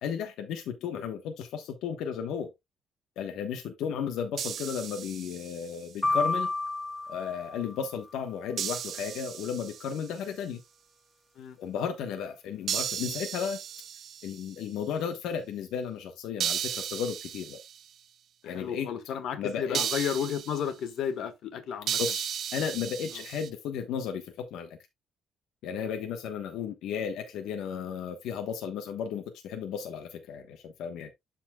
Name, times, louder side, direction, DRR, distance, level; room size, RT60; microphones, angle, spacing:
voice 1, 0.0-2.5 3.2-6.5 7.1-10.6 11.6-13.6 14.2-17.6 18.4-18.9 19.4-19.9 22.0-24.8 25.6-31.1, left 7 dB, 85° left, 1.2 m, -34 dB
sound 1, 4.4-5.8 8.6-10.1 12.7-14.6 16.4-17.9 19.7-20.7 21.9-23.5, right 9 dB, 50° right, 0.6 m, -35 dB
sound 2, 6.0-8.2, left 2 dB, 10° left, 0.9 m, -31 dB
voice 2, 18.4-22.0 25.8-25.9, left 8 dB, 60° left, 1.5 m, -33 dB
12.0 x 4.4 x 2.3 m
cardioid pair, 150°, 0 cm